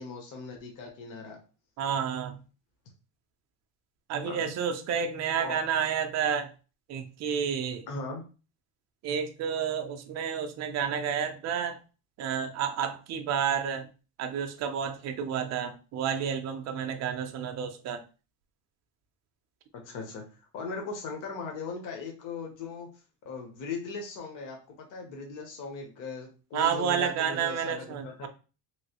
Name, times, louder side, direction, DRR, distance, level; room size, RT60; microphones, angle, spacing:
voice 1, 0.0-1.4 4.2-4.5 5.4-5.6 7.9-8.2 19.7-20.2 20.5-22.9 23.3-28.3, left 4 dB, 40° left, 2 dB, 0.8 m, -38 dB
voice 2, 1.8-2.4 4.1-6.5 6.9-7.9 9.0-11.8 12.2-13.9 14.2-18.0 26.5-28.3, right 7 dB, 35° right, 7 dB, 0.4 m, -30 dB
3.1 x 2.6 x 2.8 m, 0.33 s
cardioid pair, 145°, 47 cm